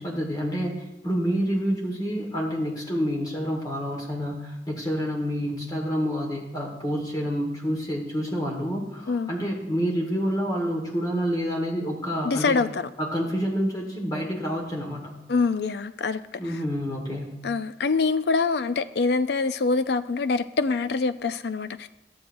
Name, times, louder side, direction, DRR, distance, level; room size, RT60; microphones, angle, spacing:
voice 1, 0.0-12.6 13.0-15.2 16.4-17.4, equal, 20° left, 1.5 m, -28 dB
voice 2, 12.2-12.9 15.3-16.2 16.5-16.6 17.4-21.9, left 4 dB, 70° left, 0.4 m, -25 dB
14.5 x 7.7 x 2.6 m
head